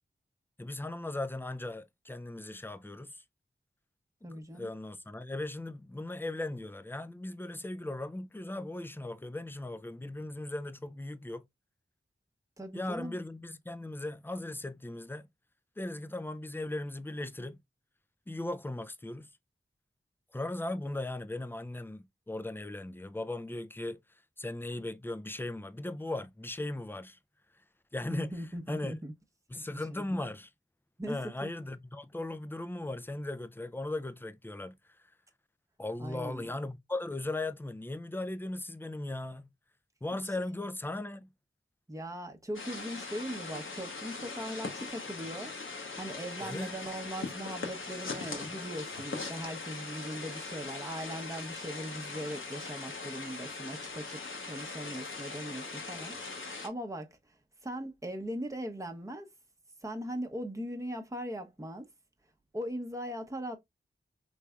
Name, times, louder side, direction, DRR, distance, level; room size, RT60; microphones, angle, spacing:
voice 1, 0.6-3.2 4.2-11.4 12.7-15.3 15.8-17.6 18.3-19.3 20.3-27.2 27.5-27.6 27.9-29.0 29.5-30.5 31.1-35.1 35.8-39.5 40.0-41.3 46.4-46.7, left 2 dB, 10° left, 0.4 m, -38 dB
voice 2, 4.2-4.7 12.6-13.1 28.1-29.1 29.7-30.0 31.0-31.5 36.0-36.5 40.4-40.5 41.9-45.5 46.0-54.2 54.5-57.2 57.6-59.3 59.8-61.9 62.5-63.6, equal, 15° right, 0.8 m, -39 dB
sound 1, 42.5-56.7, left 3 dB, 75° left, 0.9 m, -40 dB
3.4 x 3.1 x 2.3 m
wide cardioid pair, 45°, 21 cm